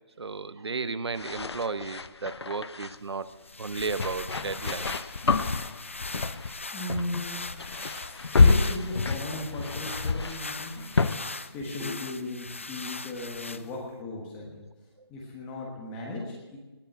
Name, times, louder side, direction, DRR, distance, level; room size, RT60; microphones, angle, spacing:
voice 1, 0.2-3.3 3.6-5.1 15.0-15.1 16.2-16.3, right 4 dB, 75° right, 14 dB, 0.9 m, -34 dB
sound 1, 1.1-3.0 3.9-6.6 6.9-7.2 7.5-11.2, left 4 dB, 75° left, 0.8 m, -27 dB
sound 2, 3.3-13.9, left 3 dB, 30° left, 0.3 m, -40 dB
voice 2, 6.7-7.4 8.0-14.7 15.1-16.6, left 2 dB, 5° left, -2 dB, 1.2 m, -37 dB
19.0 x 7.0 x 7.9 m, 1.2 s
hypercardioid pair, 175°, 14 cm